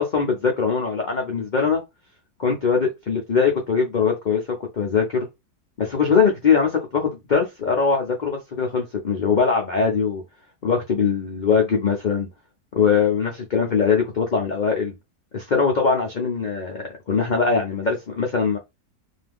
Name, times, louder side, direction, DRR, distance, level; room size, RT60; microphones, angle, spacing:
voice 1, 0.0-1.8 2.4-5.3 5.8-10.2 10.6-12.3 12.8-14.9 15.3-18.6, left 5 dB, 75° left, 0.4 m, -21 dB
2.7 x 2.3 x 3.5 m
omnidirectional pair, 1.7 m